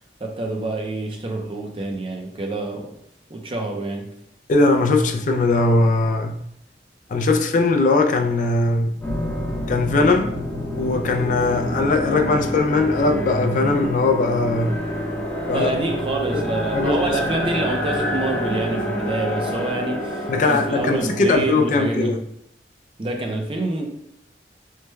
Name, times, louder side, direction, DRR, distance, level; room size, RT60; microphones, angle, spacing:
voice 1, 0.2-2.9 3.3-4.1 15.5-22.2 23.0-23.9, right 2 dB, 30° right, 0.5 m, -27 dB
voice 2, 4.5-6.4 7.1-9.0 9.7-10.3 10.8-14.7 15.5-15.7 16.7-17.2 20.3-22.2, left 3 dB, 45° left, 0.3 m, -20 dB
sound 1, 9.0-21.4, equal, 10° left, 0.6 m, -27 dB
3.2 x 2.1 x 3.2 m
head